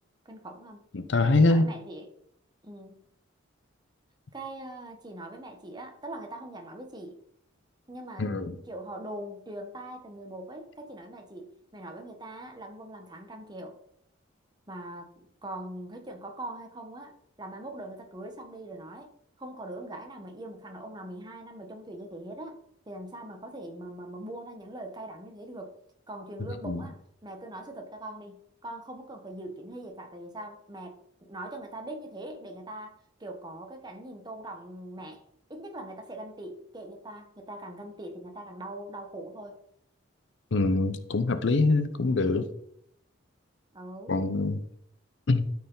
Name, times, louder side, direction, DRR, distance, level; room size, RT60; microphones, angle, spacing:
voice 1, 0.2-0.8 1.2-2.1 2.6-3.1 4.3-7.2 7.9-13.8 14.7-19.1 19.4-22.6 22.9-25.8 26.1-35.2 35.5-39.6 43.7-44.2, right 1 dB, 20° right, 1.1 m, -42 dB
voice 2, 0.9-1.7 8.2-8.5 26.7-26.8 40.5-42.5 44.1-44.6 45.3-45.4, left 3 dB, 60° left, 0.6 m, -24 dB
12.5 x 4.6 x 3.8 m
head